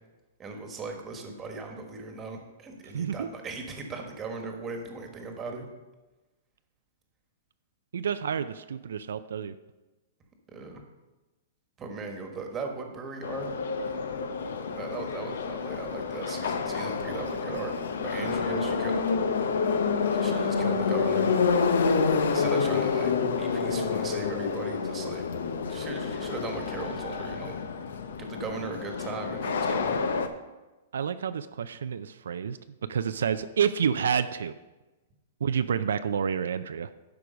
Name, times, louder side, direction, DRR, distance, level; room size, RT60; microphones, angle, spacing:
voice 1, 0.4-5.7 10.5-10.8 11.8-13.5 14.8-17.7 18.0-19.1 20.1-21.3 22.3-25.2 25.7-27.6 28.2-30.0, right 4 dB, 20° right, 4 dB, 1.3 m, -38 dB
voice 2, 2.9-3.3 7.9-9.5 18.6-18.7 30.9-32.6 32.9-34.5 35.4-36.9, right 7 dB, 85° right, 11 dB, 0.4 m, -29 dB
Subway metro underground, 13.2-30.3, left 5 dB, 80° left, 0.8 m, -28 dB
11.5 x 4.8 x 5.1 m, 1.1 s
hypercardioid pair, 150°, 0 cm